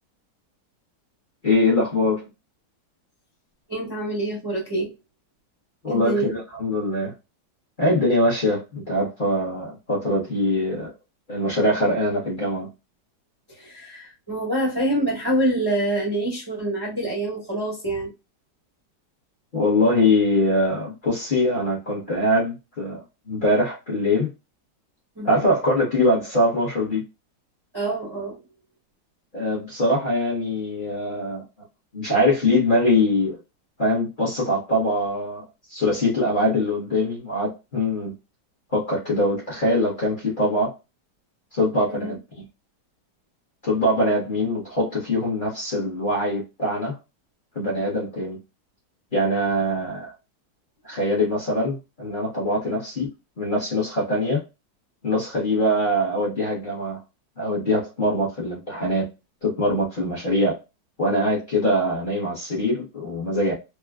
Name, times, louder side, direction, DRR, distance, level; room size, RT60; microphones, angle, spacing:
voice 1, 1.4-2.2 5.8-7.1 7.8-10.9 11.3-12.7 19.5-23.0 23.3-24.3 25.2-27.0 29.3-31.4 31.9-33.4 33.8-35.4 35.7-38.1 38.7-40.7 41.5-42.2 43.6-46.9 47.5-48.4 49.1-50.1 50.8-53.1 53.4-54.4 55.0-57.0 57.4-59.1 59.4-60.6 61.0-63.5, left 1 dB, 35° left, 0.9 m, -23 dB
voice 2, 3.7-4.9 5.9-6.3 13.5-18.1 25.2-25.4 27.7-28.4 41.9-42.2 52.7-52.8, right 1 dB, 25° right, 0.5 m, -26 dB
3.4 x 2.2 x 2.2 m
omnidirectional pair, 1.9 m